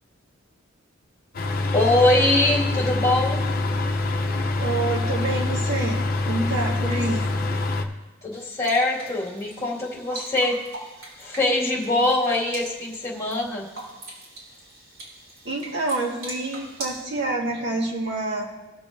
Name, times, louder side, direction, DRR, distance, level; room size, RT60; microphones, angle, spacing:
sound 1, 1.3-7.8, left 2 dB, 45° left, 0.8 m, -25 dB
voice 1, 1.7-3.4 8.2-10.6 11.2-13.6, left 2 dB, 15° left, -4 dB, 2.2 m, -22 dB
voice 2, 4.6-6.0 6.3-7.3 15.4-18.5, right 2 dB, 60° right, -2 dB, 1.9 m, -27 dB
sound 2, 8.3-17.0, right 1 dB, 75° right, 3.4 m, -41 dB
20.0 x 6.9 x 2.7 m, 1.2 s
head